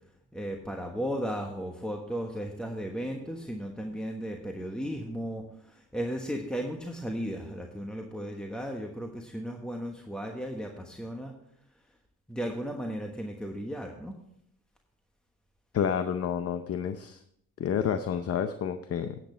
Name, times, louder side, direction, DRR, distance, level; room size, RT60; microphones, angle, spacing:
voice 1, 0.3-11.3 12.3-14.1, equal, 5° left, 2 dB, 1.2 m, -35 dB
voice 2, 15.7-17.2 17.6-19.2, left 8 dB, 50° left, 9 dB, 0.7 m, -29 dB
10.0 x 8.6 x 4.4 m, 0.72 s
cardioid pair, 90°, 30 cm